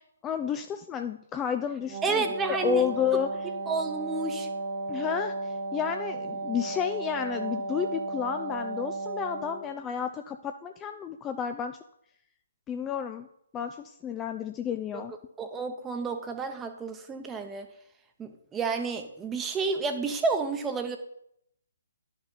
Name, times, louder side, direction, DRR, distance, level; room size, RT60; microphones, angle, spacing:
voice 1, 0.0-3.4 4.9-11.8 12.7-13.3 13.5-15.1, left 8 dB, 15° left, 7 dB, 0.3 m, -31 dB
Wind instrument woodwind instrument, 1.8-9.8, right 3 dB, 40° right, 1.2 m, -34 dB
voice 2, 2.0-2.8 3.7-4.5 14.9-15.0 15.4-17.7 18.2-21.0, right 4 dB, 10° right, 6 dB, 0.9 m, -30 dB
11.0 x 5.7 x 4.0 m, 0.74 s
figure-of-eight pair, 135°, 0 cm